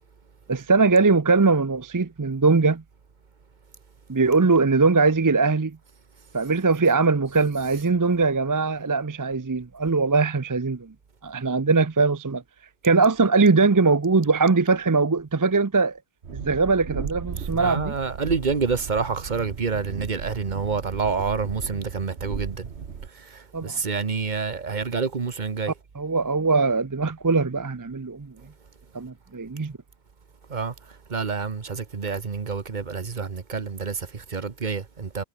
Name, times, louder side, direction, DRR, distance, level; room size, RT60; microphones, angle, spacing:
voice 1, 0.5-2.8 4.1-5.8 6.3-10.9 11.2-12.4 12.8-16.0 16.3-18.0 23.5-23.8 25.7-28.3 28.9-29.7, right 4 dB, 25° right, 0.5 m, -21 dB
Train, 16.2-23.1, right 6 dB, 75° right, 1.6 m, -36 dB
voice 2, 17.5-22.7 23.6-25.7 30.5-30.7 31.1-35.2, right 5 dB, 45° right, 1.2 m, -28 dB
omnidirectional pair, 1.1 m